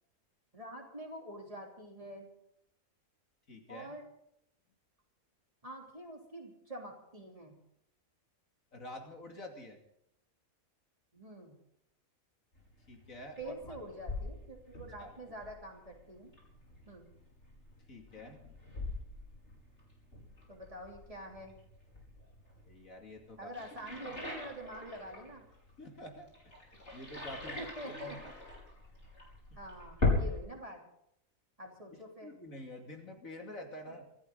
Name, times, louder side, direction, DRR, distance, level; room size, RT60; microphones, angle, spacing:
voice 1, 0.5-2.3 3.7-4.1 5.6-7.6 11.1-11.6 13.4-16.3 16.9-17.1 20.5-21.5 23.4-25.5 27.6-28.2 29.6-30.8 31.6-32.3 33.9-34.0, right 1 dB, 25° right, 0 dB, 3.5 m, -46 dB
voice 2, 3.5-4.0 8.7-9.8 12.9-13.5 15.0-15.1 17.9-18.4 22.6-23.5 24.0-24.1 25.8-26.5 26.9-28.2 29.5-29.6 32.2-34.0, left 1 dB, 65° left, 2 dB, 3.0 m, -48 dB
sound 1, 12.5-30.4, left 3 dB, 50° left, 5.7 m, -40 dB
25.5 x 14.0 x 4.0 m, 0.75 s
omnidirectional pair, 1.5 m